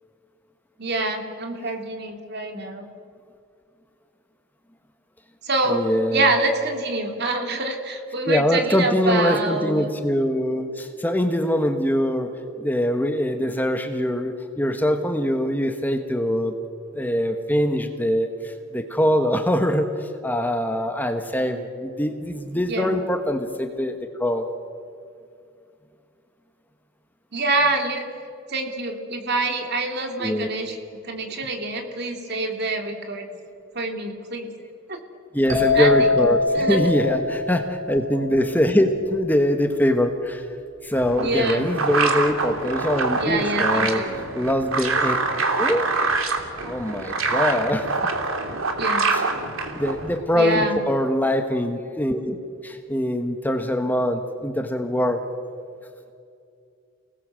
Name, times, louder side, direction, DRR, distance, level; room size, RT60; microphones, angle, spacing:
voice 1, 0.8-2.9 5.4-5.8 6.1-9.9 22.7-22.9 27.3-28.1 28.5-30.8 31.0-33.3 33.7-34.5 34.9-35.0 35.7-36.1 36.5-36.9 41.2-41.6 43.2-44.2 48.7-49.1 50.3-50.8, right 2 dB, 50° right, 4 dB, 3.2 m, -26 dB
voice 2, 5.7-6.3 8.3-12.3 12.6-16.6 16.9-24.5 30.2-30.5 35.3-40.4 40.8-44.1 44.3-45.1 45.6-45.9 46.6-48.0 49.1-49.2 49.7-52.4 52.6-55.2, equal, 10° left, 6 dB, 1.3 m, -23 dB
sound 1, 35.5-39.1, left 3 dB, 35° right, 4.4 m, -24 dB
sound 2, 40.9-50.2, right 3 dB, 75° right, 2.9 m, -25 dB
30.0 x 19.5 x 7.7 m, 2.4 s
head